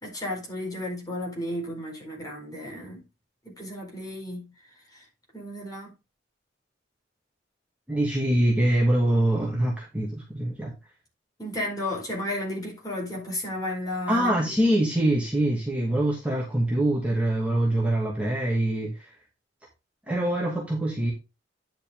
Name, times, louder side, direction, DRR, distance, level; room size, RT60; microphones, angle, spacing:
voice 1, 0.0-3.0 3.4-4.5 4.9-5.0 5.3-5.9 11.4-14.5, left 1 dB, 20° left, 4.5 m, -33 dB
voice 2, 7.9-10.7 14.1-18.9 20.1-21.1, right 1 dB, 5° right, 2.4 m, -24 dB
10.0 x 6.4 x 3.7 m
head